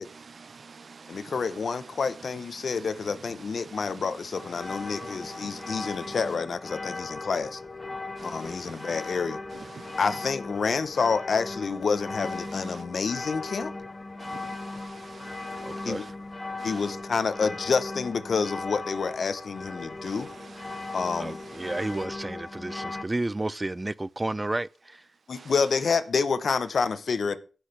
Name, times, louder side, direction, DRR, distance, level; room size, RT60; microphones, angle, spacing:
voice 1, 0.0-6.3 8.2-9.2 9.5-10.3 12.2-12.8 14.2-16.1 16.6-16.9 20.0-22.1 25.3-25.5, right 5 dB, 70° right, 0.6 m, -48 dB
voice 2, 1.1-7.6 8.2-9.4 10.0-13.7 15.8-16.1 16.6-20.3 20.9-21.4 25.3-27.4, left 5 dB, 75° left, 0.7 m, -28 dB
sound 1, 4.3-23.0, left 3 dB, 35° left, 1.0 m, -38 dB
voice 3, 15.6-16.0 21.2-24.7, right 2 dB, 25° right, 0.3 m, -31 dB
16.0 x 6.1 x 3.3 m
cardioid pair, 50°, 0 cm